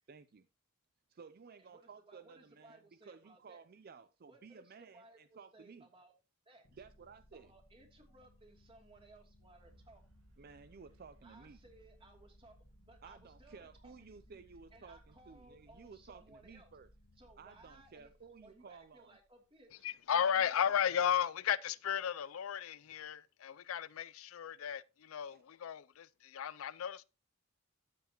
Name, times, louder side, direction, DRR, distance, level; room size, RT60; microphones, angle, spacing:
voice 1, 0.1-0.5 1.1-2.8 3.1-5.0 5.4-5.9 6.8-7.5 10.4-11.6 13.0-16.9 17.4-19.1 25.3-25.4, right 5 dB, 45° right, 0.4 m, -55 dB
voice 2, 1.6-3.6 4.3-6.1 6.4-6.9 7.3-10.0 11.2-14.4 14.7-16.7 17.1-19.9 20.1-21.0, right 2 dB, 25° right, 2.7 m, -61 dB
sound 1, 6.6-19.5, equal, 60° left, 1.5 m, -64 dB
sound 2, 9.6-15.5, right 2 dB, 70° right, 2.0 m, -71 dB
voice 3, 19.8-27.1, left 8 dB, 75° left, 0.4 m, -35 dB
13.0 x 8.0 x 3.0 m
head